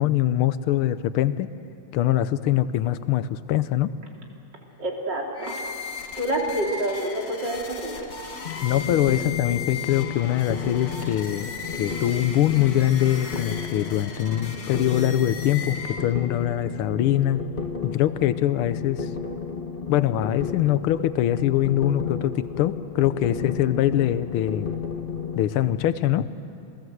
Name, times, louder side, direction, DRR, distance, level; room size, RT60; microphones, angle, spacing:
voice 1, 0.0-1.5 1.9-3.9 8.6-11.5 11.8-17.4 17.8-19.1 19.9-24.7 25.3-26.3, left 12 dB, 85° left, 13 dB, 1.6 m, -23 dB
voice 2, 4.8-5.8 6.2-8.1, right 1 dB, 55° right, -1 dB, 3.8 m, -28 dB
sound 1, 5.4-16.4, left 5 dB, 50° left, 1.9 m, -37 dB
sound 2, 8.4-25.9, left 6 dB, 30° left, 1.4 m, -33 dB
28.0 x 19.5 x 7.9 m, 2.7 s
omnidirectional pair, 2.4 m